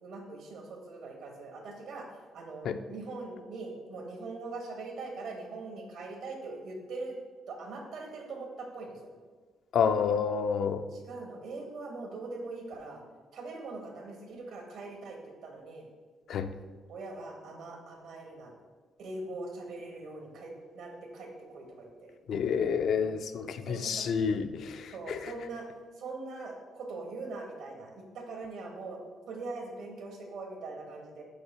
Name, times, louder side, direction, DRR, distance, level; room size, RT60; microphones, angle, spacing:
voice 1, 0.0-2.1 2.3-7.1 7.5-9.0 10.9-13.0 13.3-15.9 16.9-18.5 19.0-22.2 23.4-24.0 24.9-25.7 26.0-29.0 29.3-31.2, right 3 dB, 80° right, 2 dB, 1.2 m, -42 dB
voice 2, 9.7-10.8 16.3-16.5 22.3-25.3, left 6 dB, 70° left, 10 dB, 0.4 m, -29 dB
6.4 x 2.7 x 5.5 m, 1.4 s
cardioid pair, 90°, 0 cm